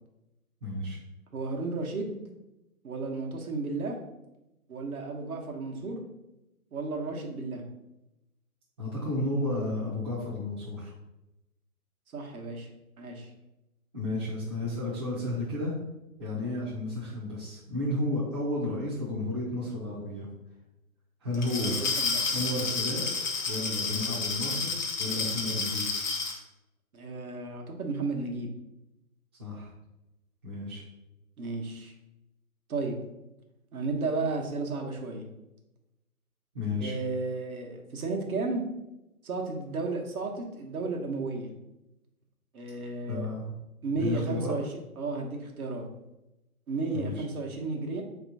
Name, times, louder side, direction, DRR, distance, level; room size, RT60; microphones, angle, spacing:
voice 1, 0.6-1.0 8.8-10.9 13.9-15.7 16.2-20.3 21.2-21.8 22.3-25.8 29.4-29.7 30.4-30.8 36.5-36.9 43.1-43.5 44.0-44.5 46.9-47.2, left 2 dB, 20° right, -9 dB, 0.6 m, -32 dB
voice 2, 1.3-2.1 2.8-4.0 4.7-6.0 6.7-7.6 12.1-12.7 13.0-13.3 21.3-22.2 26.9-28.5 31.4-31.9 32.7-33.0 33.7-35.3 36.8-38.6 39.2-41.5 42.5-43.3 43.8-44.6 45.0-45.9 46.7-48.0, right 3 dB, 75° right, 1 dB, 1.1 m, -33 dB
Glass, 21.3-26.4, left 4 dB, 30° left, 0.6 m, -30 dB
3.6 x 2.9 x 3.9 m, 0.93 s
hypercardioid pair, 145°, 44 cm